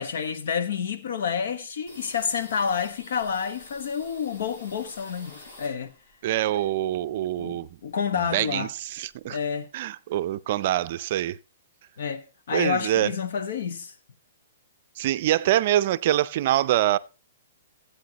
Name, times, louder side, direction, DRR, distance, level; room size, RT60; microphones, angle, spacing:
voice 1, 0.0-5.9 7.4-8.7 9.3-9.7 12.0-13.9, left 7 dB, 70° left, 1.3 m, -29 dB
sound 1, 1.9-6.2 6.5-7.9 8.2-8.3 8.6-9.3, left 1 dB, 45° left, 6.5 m, -49 dB
voice 2, 6.2-7.7 8.3-9.4 9.7-11.4 12.5-13.1 15.0-17.0, right 13 dB, 45° right, 0.5 m, -24 dB
15.5 x 8.5 x 2.9 m
hypercardioid pair, 160°, 0 cm